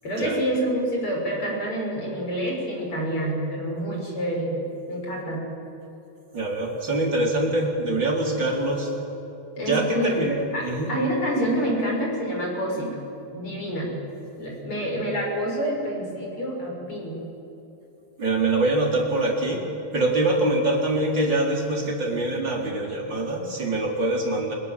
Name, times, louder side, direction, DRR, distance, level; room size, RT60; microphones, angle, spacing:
voice 1, 0.0-4.5 4.9-5.4 9.6-12.9 13.3-13.9 14.4-17.2, equal, 25° left, -1 dB, 7.2 m, -27 dB
voice 2, 6.3-8.9 9.6-10.9 18.2-19.6 19.9-24.5, right 2 dB, 25° right, -1 dB, 4.1 m, -24 dB
29.5 x 26.0 x 7.6 m, 2.9 s
omnidirectional pair, 5.4 m